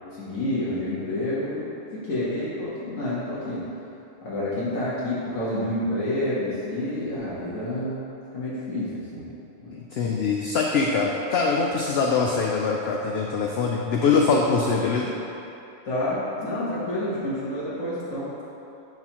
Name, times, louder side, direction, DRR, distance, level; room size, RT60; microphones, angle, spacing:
voice 1, 0.1-3.7 4.2-8.0 8.3-9.3 9.6-9.7 15.8-18.3, left 1 dB, 85° left, -10 dB, 1.6 m, -29 dB
voice 2, 9.7-15.1, left 4 dB, 65° left, -1 dB, 0.7 m, -23 dB
11.0 x 4.0 x 2.9 m, 2.9 s
omnidirectional pair, 1.3 m